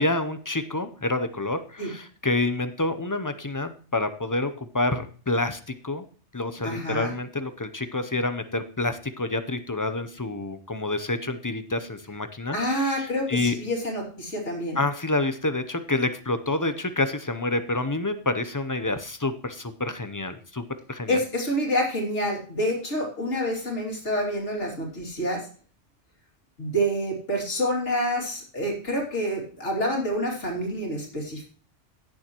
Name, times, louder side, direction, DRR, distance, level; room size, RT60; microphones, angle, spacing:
voice 1, 0.0-6.0 6.3-12.6 13.0-13.6 14.8-20.6 20.9-21.2, left 2 dB, 25° left, 10 dB, 0.5 m, -28 dB
voice 2, 6.6-7.1 12.5-14.8 21.1-25.5 26.6-31.4, equal, 70° left, -2 dB, 3.1 m, -27 dB
17.0 x 7.0 x 3.0 m, 0.41 s
omnidirectional pair, 1.2 m